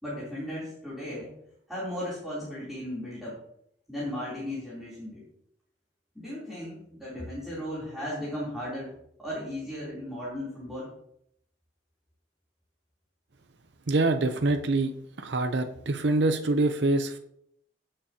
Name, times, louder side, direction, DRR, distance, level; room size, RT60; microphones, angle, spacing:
voice 1, 0.0-1.3 1.7-3.4 3.9-5.2 6.1-8.9 9.2-10.9, left 1 dB, ahead, -10 dB, 3.3 m, -36 dB
voice 2, 13.9-14.9 15.2-17.2, right 2 dB, 80° right, 7 dB, 0.7 m, -25 dB
16.5 x 6.7 x 2.9 m, 0.72 s
head